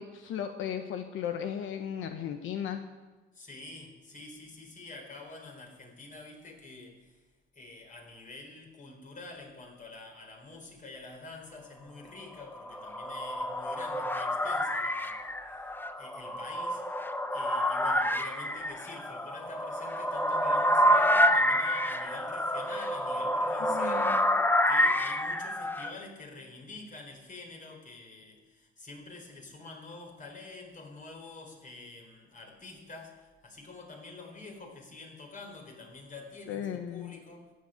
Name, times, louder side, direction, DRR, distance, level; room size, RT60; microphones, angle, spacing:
voice 1, 0.0-2.8 23.7-24.2 36.5-37.1, left 9 dB, 85° left, 7 dB, 1.0 m, -36 dB
voice 2, 3.3-7.2 7.5-15.6 16.0-17.0 17.3-24.1 24.7-37.5, left 3 dB, 40° left, 2 dB, 4.1 m, -47 dB
sound 1, 12.5-25.9, equal, 10° left, 1.0 m, -28 dB
14.0 x 7.8 x 9.2 m, 1.2 s
cardioid pair, 90°, 20 cm